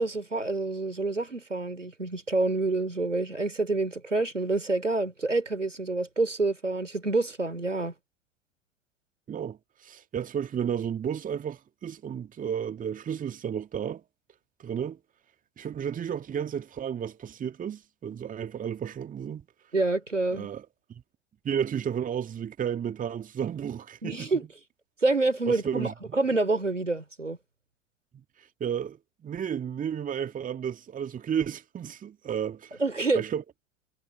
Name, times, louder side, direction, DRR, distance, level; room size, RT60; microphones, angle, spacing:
voice 1, 0.0-7.9 19.7-20.5 24.0-24.4 25.0-27.4 32.8-33.2, right 3 dB, 85° right, 3.4 m, -27 dB
voice 2, 9.3-14.0 14.6-15.0 15.6-19.4 20.3-21.0 21.4-24.4 25.5-26.2 28.4-32.8 33.1-33.4, right 8 dB, 20° right, 2.1 m, -32 dB
figure-of-eight pair, 85°, 36 cm